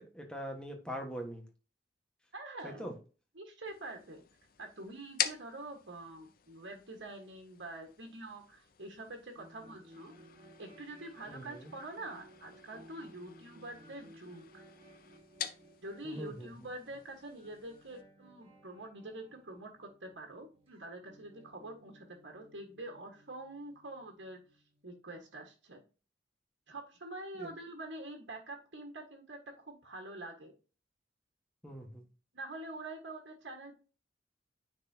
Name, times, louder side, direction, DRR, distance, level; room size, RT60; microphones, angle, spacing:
voice 1, 0.0-1.4 2.6-2.9 11.3-11.7 16.0-16.5 27.3-27.5 31.6-32.0, equal, 5° left, 2 dB, 1.4 m, -42 dB
voice 2, 2.3-3.0 3.3-4.2 4.6-10.1 10.6-14.5 15.8-24.4 24.8-25.8 26.7-30.5 32.3-33.7, right 2 dB, 85° right, 2 dB, 1.5 m, -46 dB
sound 1, 3.7-18.0, left 9 dB, 50° left, 0.6 m, -45 dB
sound 2, 9.4-24.8, right 1 dB, 30° right, 1.8 m, -60 dB
9.5 x 4.1 x 2.8 m, 0.34 s
head